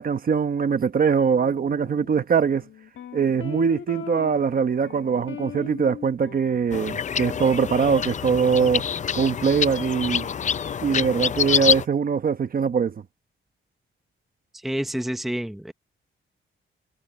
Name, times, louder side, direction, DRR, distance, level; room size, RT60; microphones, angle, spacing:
voice 1, 0.0-2.6 3.1-8.8 9.1-10.3 10.8-13.0, right 6 dB, 45° right, 1.0 m, -22 dB
sound 1, 1.3-6.9, left 9 dB, 70° left, 1.5 m, -40 dB
sound 2, 6.7-11.9, left 7 dB, 35° left, 0.4 m, -26 dB
voice 2, 14.5-15.7, right 1 dB, ahead, 0.9 m, -29 dB
wide cardioid pair, 160°, 21 cm